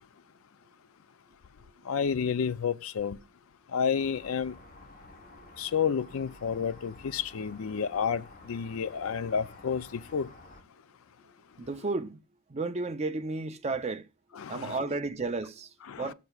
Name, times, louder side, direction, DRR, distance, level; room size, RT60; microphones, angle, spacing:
voice 1, 1.9-3.2 3.7-4.5 5.6-10.3 14.3-14.9 15.8-16.1, left 6 dB, 70° left, 0.4 m, -30 dB
sound 1, 3.9-10.6, left 2 dB, 40° left, 1.1 m, -52 dB
voice 2, 11.6-12.2 12.5-14.0 14.5-15.7 16.0-16.1, right 3 dB, 30° right, 0.5 m, -32 dB
18.0 x 6.7 x 2.3 m
head